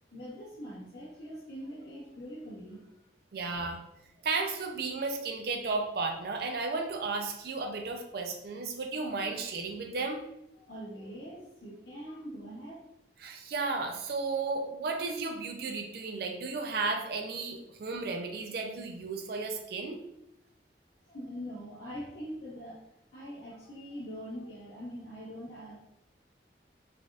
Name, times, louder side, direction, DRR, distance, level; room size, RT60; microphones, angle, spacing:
voice 1, 0.1-2.9 4.1-4.3 10.5-12.8 21.0-22.8 23.1-25.8, equal, 75° left, -8 dB, 0.7 m, -43 dB
voice 2, 3.3-3.8 4.2-10.2 13.2-20.0, right 3 dB, 60° right, 3 dB, 0.4 m, -34 dB
3.2 x 2.4 x 2.4 m, 0.83 s
head